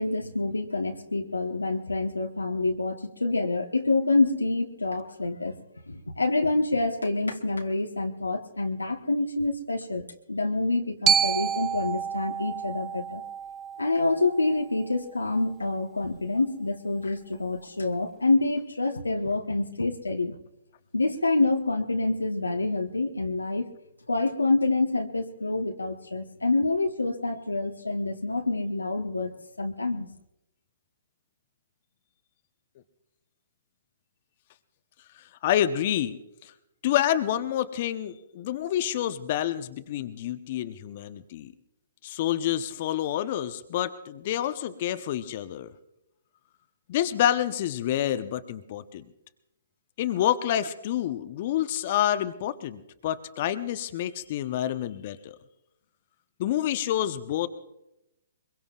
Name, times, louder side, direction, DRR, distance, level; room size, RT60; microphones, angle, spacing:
voice 1, 0.0-5.6 5.9-13.2 13.8-20.4 20.9-23.7 24.1-29.3 29.6-30.1, left 2 dB, 90° left, 3 dB, 1.2 m, -27 dB
Glockenspiel, 11.1-15.2, right 7 dB, 20° right, 0.6 m, -29 dB
voice 2, 35.1-36.5 36.8-41.5 42.0-45.7 46.9-49.1 50.0-55.4 56.4-57.5, left 11 dB, 45° left, 9 dB, 0.9 m, -28 dB
23.0 x 22.5 x 2.5 m, 0.86 s
figure-of-eight pair, 125°, 0 cm